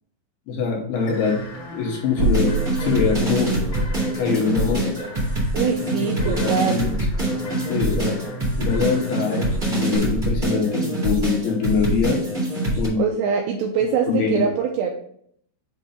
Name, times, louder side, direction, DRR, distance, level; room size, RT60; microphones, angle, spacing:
voice 1, 0.5-1.4 1.7-2.5 2.8-3.5 4.1-4.9 6.0-6.9 7.7-8.2 8.6-12.2 12.8-13.0 14.1-14.4, left 5 dB, 75° left, -1 dB, 2.6 m, -23 dB
sound 1, 1.0-10.0, right 1 dB, 45° left, 1.6 m, -37 dB
sound 2, 2.2-12.9, right 1 dB, 30° right, 1.2 m, -24 dB
sound 3, 2.2-3.8, right 4 dB, 65° right, 2.6 m, -25 dB
voice 2, 5.5-6.8 13.0-14.9, right 6 dB, 90° right, 3 dB, 2.4 m, -23 dB
7.7 x 2.7 x 5.5 m, 0.67 s
omnidirectional pair, 5.3 m